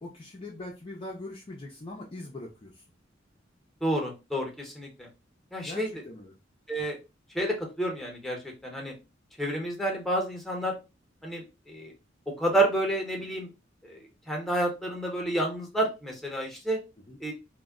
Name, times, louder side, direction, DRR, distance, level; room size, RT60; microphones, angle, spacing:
voice 1, 0.0-2.8 5.6-6.3 17.0-17.2, left 2 dB, 30° left, -1 dB, 0.5 m, -42 dB
voice 2, 3.8-5.1 5.5-5.9 6.7-7.0 7.3-8.9 9.4-10.7 11.2-11.9 12.3-13.5 13.8-16.8 17.2-17.3, right 1 dB, ahead, 0 dB, 0.8 m, -30 dB
2.2 x 2.0 x 3.5 m, 0.27 s
head